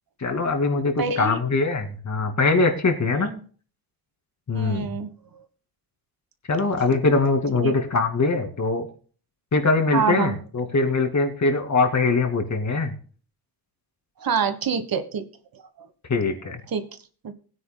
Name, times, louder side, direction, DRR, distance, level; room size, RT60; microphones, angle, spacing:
voice 1, 0.2-3.3 4.5-5.0 6.5-8.8 9.5-12.9 16.1-16.6, left 3 dB, 45° left, 5 dB, 2.4 m, -22 dB
voice 2, 1.0-1.4 3.1-3.4 4.5-5.4 7.6-7.7 9.9-10.4 14.2-15.3 16.7-16.8 17.2-17.3, right 6 dB, 65° right, 10 dB, 1.4 m, -26 dB
21.0 x 9.7 x 2.2 m, 0.41 s
wide cardioid pair, 150°, 38 cm